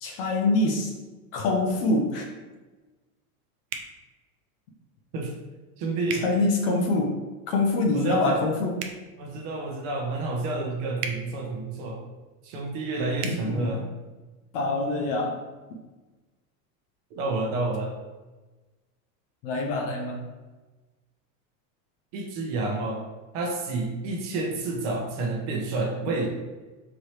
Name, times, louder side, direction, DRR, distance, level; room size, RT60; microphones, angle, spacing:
voice 1, 0.0-0.9 1.3-2.3 6.1-7.2 7.5-8.9 13.2-13.8 14.5-15.4 19.4-20.2, left 2 dB, 40° left, 2 dB, 0.5 m, -25 dB
sound 1, 3.7-3.9 6.1-6.3 8.7-9.0 11.0-11.2 13.2-13.4, right 6 dB, 85° right, 0.7 m, -33 dB
voice 2, 5.8-6.2 7.9-8.4 9.2-12.0 12.4-13.8 17.1-18.0 22.1-23.0 23.3-26.3, right 2 dB, 45° right, 1 dB, 0.9 m, -29 dB
4.6 x 3.0 x 3.1 m, 1.2 s
supercardioid pair, 160°, 45 cm